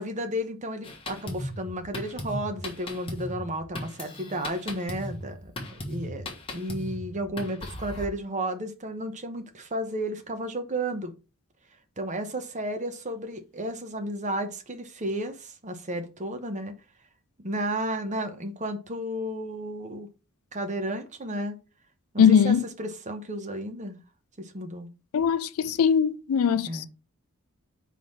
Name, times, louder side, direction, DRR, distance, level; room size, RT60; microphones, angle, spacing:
voice 1, 0.0-5.5 5.8-6.3 6.5-11.1 12.0-16.7 17.4-20.1 20.5-21.6 22.1-24.0 24.4-24.9 26.7-26.9, right 1 dB, 35° right, 1.0 m, -33 dB
Drum kit, 0.8-8.1, left 1 dB, 25° left, 1.4 m, -37 dB
voice 2, 22.2-22.6 25.1-26.9, left 7 dB, 75° left, 0.4 m, -21 dB
4.7 x 3.9 x 5.4 m
head